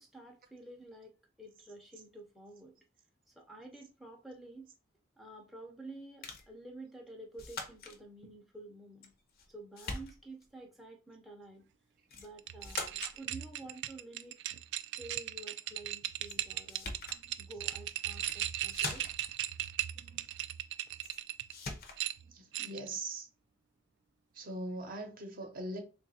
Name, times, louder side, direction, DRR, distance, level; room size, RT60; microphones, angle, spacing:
voice 1, 0.0-2.8 3.4-4.7 5.2-9.1 9.5-11.6 12.2-14.4 15.0-16.9 17.4-19.1, right 2 dB, ahead, 0.6 m, -50 dB
sound 1, 6.2-6.5 7.4-8.0 9.0-9.5 9.8-10.5 12.1-12.3 12.6-13.2 16.3-16.4 16.7-17.2 18.1-18.4 18.7-19.3 21.0-21.2 21.5-22.0, left 4 dB, 50° left, 0.7 m, -42 dB
sound 2, 12.4-21.5 22.0-22.9, right 13 dB, 60° right, 0.3 m, -38 dB
voice 2, 19.9-20.3 22.2-23.3 24.3-25.8, right 2 dB, 45° right, 0.8 m, -42 dB
3.1 x 2.4 x 4.1 m
head